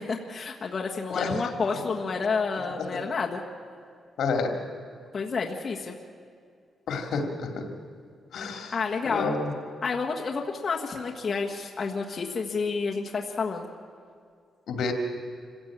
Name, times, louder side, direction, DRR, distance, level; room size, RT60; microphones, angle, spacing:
voice 1, 0.0-3.4 5.1-5.9 8.7-9.3 9.8-13.7, left 4 dB, 35° left, -1 dB, 1.5 m, -30 dB
voice 2, 1.1-1.4 4.2-4.5 6.9-7.7 8.3-8.7 9.0-9.5 14.7-14.9, left 4 dB, 75° left, 4 dB, 2.7 m, -29 dB
26.5 x 16.0 x 8.8 m, 2.2 s
wide cardioid pair, 145°, 0 cm